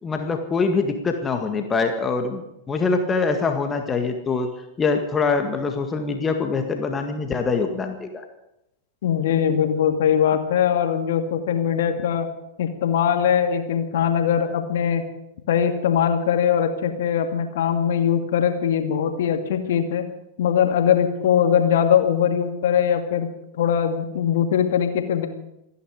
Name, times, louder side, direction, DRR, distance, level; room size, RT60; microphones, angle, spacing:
voice 1, 0.0-4.5 4.8-8.2, left 4 dB, 20° left, 5 dB, 1.9 m, -24 dB
voice 2, 9.0-12.3 12.6-15.0 15.5-20.0 20.4-23.3 23.6-25.3, left 8 dB, 60° left, 6 dB, 2.2 m, -21 dB
27.5 x 10.5 x 5.1 m, 0.86 s
figure-of-eight pair, 90°, 0 cm